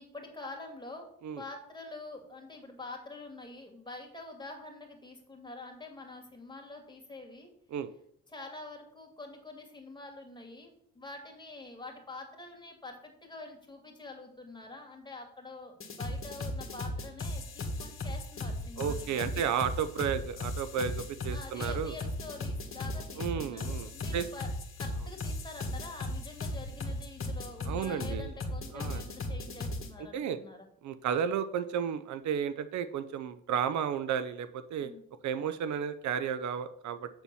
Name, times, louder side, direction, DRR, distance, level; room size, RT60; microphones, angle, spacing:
voice 1, 0.0-1.1 1.4-7.5 8.3-19.5 21.3-24.5 24.8-30.7 34.8-35.1, left 2 dB, 15° left, 2 dB, 2.5 m, -46 dB
sound 1, 15.8-29.9, left 1 dB, 45° left, 1.7 m, -36 dB
voice 2, 18.8-22.0 23.2-24.3 27.6-28.3 28.7-29.0 30.0-30.4 30.8-34.9 35.2-37.1, right 8 dB, 70° right, 12 dB, 0.7 m, -33 dB
7.8 x 4.3 x 6.9 m, 0.68 s
cardioid pair, 90°, 30 cm